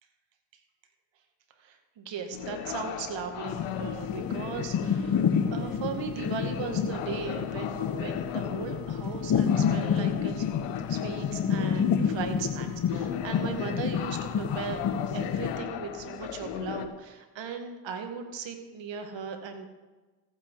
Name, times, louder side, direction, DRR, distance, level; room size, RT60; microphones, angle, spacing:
voice 1, 1.7-10.5 10.9-14.8 15.1-19.7, right 6 dB, 60° right, 6 dB, 2.1 m, -38 dB
sound 1, 2.3-16.9, left 9 dB, 80° left, 1.1 m, -37 dB
sound 2, 3.5-15.6, left 7 dB, 45° left, 1.1 m, -29 dB
14.5 x 9.7 x 4.7 m, 1.2 s
hypercardioid pair, 60°, 50 cm